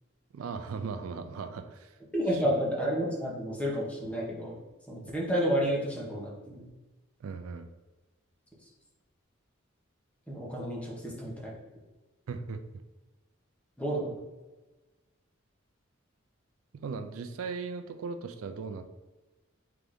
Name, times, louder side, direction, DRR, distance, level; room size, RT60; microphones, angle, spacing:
voice 1, 0.3-1.9 2.3-2.4 7.2-7.7 12.3-12.6 16.7-18.8, right 5 dB, 85° right, 8 dB, 0.4 m, -38 dB
voice 2, 2.1-4.6 4.9-6.7 10.3-11.5 13.8-14.1, equal, 5° left, -4 dB, 1.0 m, -30 dB
3.9 x 3.4 x 3.5 m, 1.2 s
head